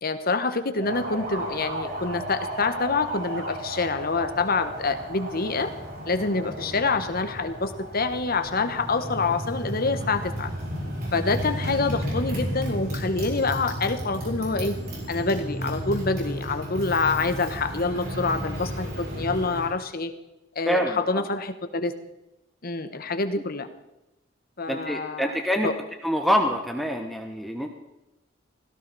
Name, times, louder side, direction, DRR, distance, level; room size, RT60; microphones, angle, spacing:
voice 1, 0.0-5.7 6.0-10.5 11.1-14.8 15.1-20.1 20.5-21.9 22.6-23.7 24.6-25.4 25.6-25.7, left 3 dB, 50° left, 9 dB, 1.3 m, -26 dB
Motorcycle, 0.7-19.7, equal, 50° right, 6.8 m, -33 dB
voice 2, 20.7-21.2 24.7-25.7 26.0-27.7, equal, ahead, 3 dB, 1.1 m, -25 dB
17.0 x 17.0 x 4.2 m, 0.94 s
head